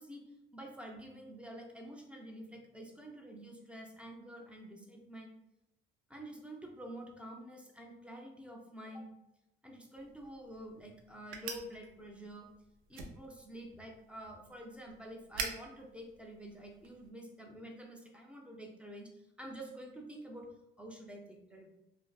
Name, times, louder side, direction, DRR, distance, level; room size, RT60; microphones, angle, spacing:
voice 1, 0.0-5.3 6.1-9.1 9.6-12.5 12.9-20.5 20.8-21.7, right 1 dB, 5° right, 1 dB, 0.4 m, -48 dB
sound 1, 9.9-17.1, right 5 dB, 85° right, 0.4 m, -47 dB
2.5 x 2.3 x 2.3 m, 0.89 s
cardioid pair, 90°, 20 cm